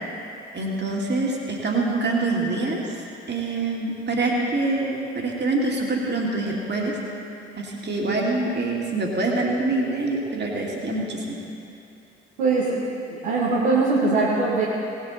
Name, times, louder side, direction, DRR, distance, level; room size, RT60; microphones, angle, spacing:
voice 1, 0.5-3.0 3.3-7.0 7.6-11.4, right 2 dB, 30° right, -1 dB, 2.6 m, -25 dB
voice 2, 12.4-12.8 13.1-14.7, right 3 dB, 70° right, -7 dB, 1.9 m, -21 dB
19.0 x 8.3 x 4.3 m, 2.7 s
figure-of-eight pair, 45°, 33 cm